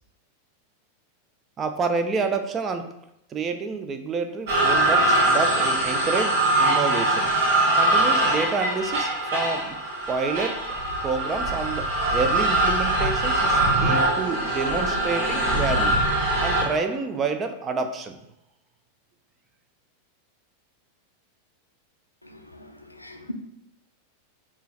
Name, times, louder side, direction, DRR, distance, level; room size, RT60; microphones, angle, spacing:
voice 1, 1.6-2.9 3.3-7.3 7.8-9.8 10.1-10.6 11.0-15.9 16.4-18.2, right 4 dB, 25° right, 7 dB, 0.4 m, -28 dB
sound 1, 4.5-16.8, right 2 dB, 50° right, 1.2 m, -22 dB
voice 2, 22.2-23.3, left 1 dB, 85° left, 5 dB, 0.4 m, -41 dB
4.5 x 2.4 x 3.2 m, 0.82 s
figure-of-eight pair, 90°, 0 cm